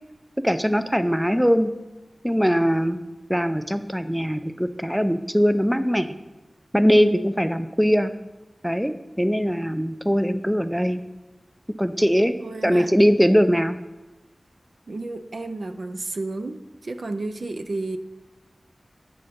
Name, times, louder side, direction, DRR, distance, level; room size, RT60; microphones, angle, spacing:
voice 1, 0.4-1.7 2.2-3.0 3.3-6.1 6.7-8.1 8.6-11.0 11.8-12.3 12.6-13.8, equal, 5° right, 11 dB, 0.4 m, -21 dB
voice 2, 12.4-12.9 13.5-13.6 14.9-18.0, right 2 dB, 70° right, 8 dB, 0.4 m, -32 dB
7.8 x 4.2 x 6.3 m, 1.1 s
wide cardioid pair, 70°, 0 cm